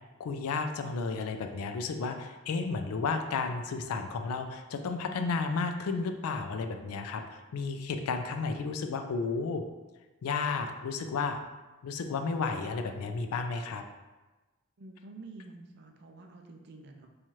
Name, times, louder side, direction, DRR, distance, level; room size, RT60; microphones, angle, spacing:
voice 1, 0.2-9.6 10.2-11.4 11.8-13.8, left 4 dB, 90° left, 6 dB, 0.4 m, -32 dB
voice 2, 14.8-17.1, right 3 dB, 50° right, 3 dB, 0.4 m, -49 dB
4.2 x 2.4 x 3.0 m, 1.2 s
head